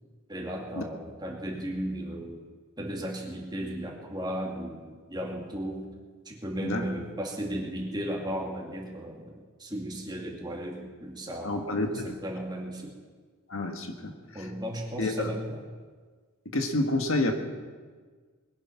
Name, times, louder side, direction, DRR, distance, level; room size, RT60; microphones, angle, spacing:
voice 1, 0.3-2.4 2.8-5.8 6.3-12.9 14.0-14.1 14.3-15.6, equal, 20° right, -1 dB, 2.4 m, -35 dB
voice 2, 11.4-12.2 13.5-14.5 15.0-15.4 16.5-17.3, left 2 dB, 65° left, 5 dB, 1.7 m, -29 dB
21.0 x 10.5 x 5.8 m, 1.5 s
head